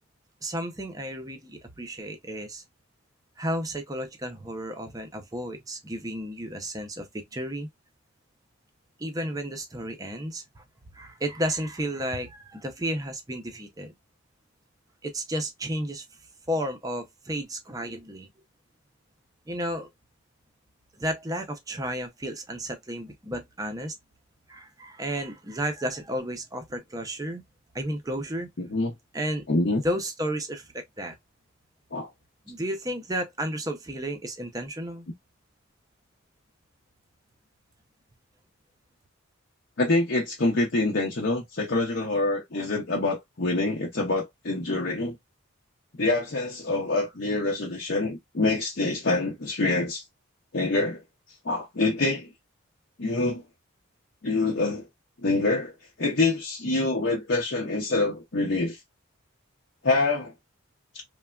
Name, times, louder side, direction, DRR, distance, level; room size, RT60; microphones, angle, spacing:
voice 1, 0.4-2.6 3.4-7.7 9.0-10.6 10.9-13.9 15.0-16.0 16.5-18.3 19.5-19.9 21.0-23.9 24.5-27.4 27.7-28.5 29.1-29.4 29.8-31.2 32.5-35.1, equal, 15° right, 0.5 m, -32 dB
voice 2, 28.6-28.9 29.5-29.8 31.9-32.1 39.8-45.2 46.0-50.0 50.5-51.0 51.4-52.3 53.0-53.4 54.2-54.8 55.2-58.8 59.8-60.3 60.9-61.0, left 2 dB, 55° left, 0.7 m, -26 dB
3.3 x 2.2 x 2.2 m
head